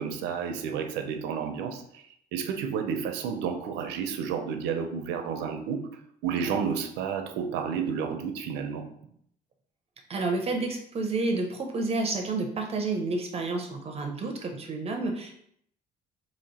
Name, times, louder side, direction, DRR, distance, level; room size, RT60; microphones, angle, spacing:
voice 1, 0.0-2.1 2.3-5.8 6.2-8.8, right 7 dB, 85° right, 6 dB, 0.6 m, -31 dB
voice 2, 10.1-15.4, right 3 dB, 35° right, 3 dB, 0.6 m, -30 dB
2.9 x 2.9 x 4.1 m, 0.69 s
cardioid pair, 110°, 17 cm